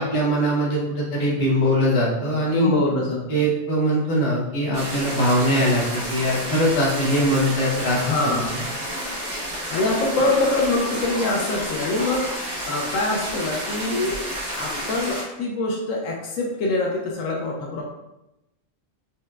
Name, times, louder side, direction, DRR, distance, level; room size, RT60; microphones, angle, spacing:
voice 1, 0.0-2.7 3.3-8.0, equal, 55° left, -5 dB, 1.1 m, -21 dB
voice 2, 2.5-3.2 8.0-8.7 9.7-14.2 14.6-17.8, left 2 dB, 85° left, -2 dB, 1.0 m, -24 dB
sound 1, 4.7-15.2, equal, 60° right, 1.5 m, -30 dB
4.6 x 2.1 x 2.3 m, 0.91 s
omnidirectional pair, 1.3 m